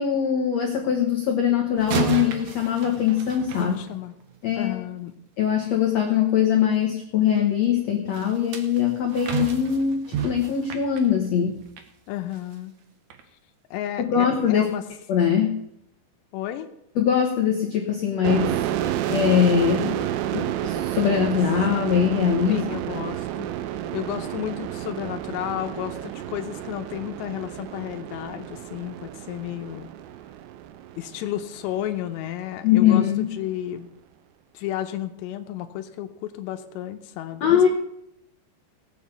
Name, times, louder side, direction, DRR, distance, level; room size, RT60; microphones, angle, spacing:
voice 1, 0.0-3.8 4.4-4.8 5.4-11.5 14.0-14.7 15.1-15.6 16.9-18.6 19.1-20.0 20.3-22.6 32.6-33.3 37.4-37.7, left 8 dB, 65° left, 2 dB, 1.7 m, -22 dB
sound 1, 1.8-4.4 8.1-11.9 12.3-12.6 13.1-13.2, right 9 dB, 65° right, 1.9 m, -32 dB
voice 2, 3.6-4.1 4.6-5.1 12.1-12.7 13.7-14.8 16.3-16.7 22.5-23.5 23.9-29.9 31.0-33.9 34.5-37.7, left 12 dB, 90° left, 7 dB, 3.1 m, -32 dB
sound 2, 18.2-31.7, right 11 dB, 80° right, 2.7 m, -30 dB
18.5 x 7.4 x 7.0 m, 0.79 s
omnidirectional pair, 4.9 m